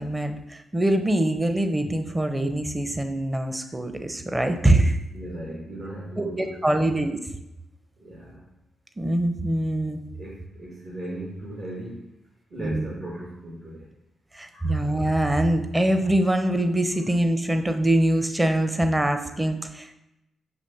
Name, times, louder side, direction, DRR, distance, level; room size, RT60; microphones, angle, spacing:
voice 1, 0.0-5.0 6.2-7.2 9.0-10.0 12.6-12.9 14.3-19.9, right 1 dB, 20° right, 7 dB, 0.8 m, -23 dB
voice 2, 5.1-6.9 8.0-8.5 10.1-12.1 12.5-13.9 14.5-14.8, right 1 dB, 60° right, -7 dB, 2.1 m, -37 dB
6.2 x 3.1 x 5.5 m, 0.90 s
supercardioid pair, 50°, 0 cm